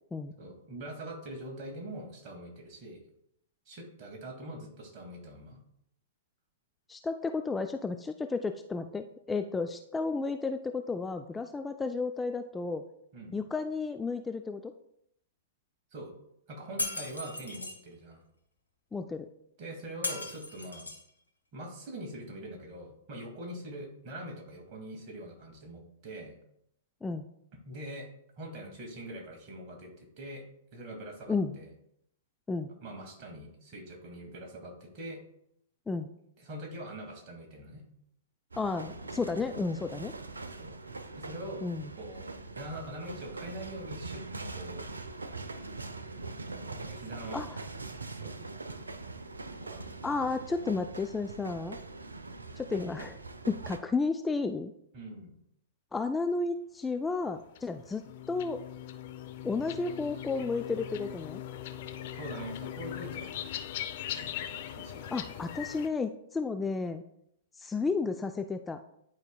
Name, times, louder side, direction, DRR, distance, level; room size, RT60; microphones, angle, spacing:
voice 1, 0.4-3.0 3.7-5.6 13.1-13.4 15.9-16.1 16.5-18.2 19.6-20.9 21.5-26.3 27.6-28.1 28.4-30.4 30.7-31.7 32.8-35.2 36.4-37.8 39.4-39.5 40.5-40.7 41.1-41.6 42.0-42.2 42.6-44.9 46.6-47.4 48.1-48.4 49.6-49.9 54.9-55.4 62.1-63.5 64.1-65.2, right 1 dB, 40° right, 1 dB, 2.2 m, -43 dB
voice 2, 6.9-12.8 13.3-14.7 18.9-19.3 27.0-27.2 31.3-31.6 32.5-32.7 35.9-36.1 38.6-40.1 41.6-41.9 47.3-47.5 50.0-51.8 52.6-53.2 53.5-54.7 55.9-58.0 58.3-58.6 59.4-61.4 65.1-67.0 67.6-68.8, left 4 dB, 10° left, 7 dB, 0.3 m, -32 dB
Shatter, 16.8-17.8 20.0-21.1, left 2 dB, 90° left, 1.0 m, -36 dB
sound 1, 38.5-53.8, right 3 dB, 85° right, 0.6 m, -42 dB
sound 2, 57.3-65.9, left 11 dB, 50° left, 0.6 m, -40 dB
10.5 x 4.8 x 2.3 m, 0.74 s
figure-of-eight pair, 110°, 0 cm